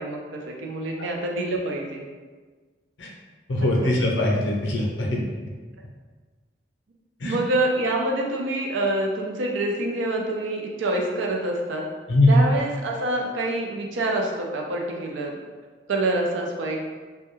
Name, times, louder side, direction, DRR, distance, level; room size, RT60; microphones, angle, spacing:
voice 1, 0.0-2.0 3.8-3.9 7.2-11.9 12.3-15.4 15.9-16.8, right 2 dB, 90° right, 0 dB, 0.4 m, -26 dB
voice 2, 3.5-5.2 7.2-7.4 12.1-12.4, left 1 dB, 80° left, -1 dB, 0.5 m, -21 dB
2.2 x 2.1 x 3.0 m, 1.4 s
head